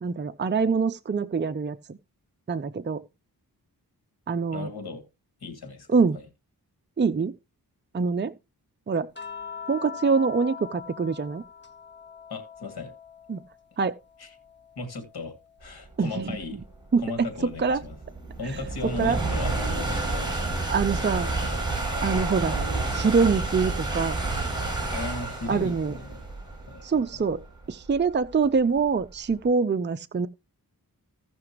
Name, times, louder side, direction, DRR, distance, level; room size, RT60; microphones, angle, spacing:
voice 1, 0.0-2.0 2.5-3.0 4.3-4.7 5.9-6.2 7.0-7.3 7.9-8.3 8.9-9.1 9.7-11.4 13.3-13.4 13.8-14.0 16.0-16.3 16.9-17.3 17.6-17.8 19.0-19.2 20.7-21.3 22.0-22.6 22.9-24.2 25.5-25.9 26.8-27.4 27.7-30.3, right 5 dB, 30° right, 0.6 m, -24 dB
voice 2, 4.5-5.0 5.4-5.9 6.1-6.3 12.3-12.9 14.2-14.3 14.8-16.6 17.0-18.0 18.4-20.4 24.9-26.2 26.7-27.2, left 3 dB, 90° left, 2.5 m, -36 dB
sound 1, 9.1-13.6 14.0-15.6 17.1-17.3, left 6 dB, 30° left, 1.7 m, -42 dB
sound 2, 16.0-29.3, right 2 dB, 10° right, 6.7 m, -30 dB
16.5 x 5.9 x 3.0 m
cardioid pair, 60°, 37 cm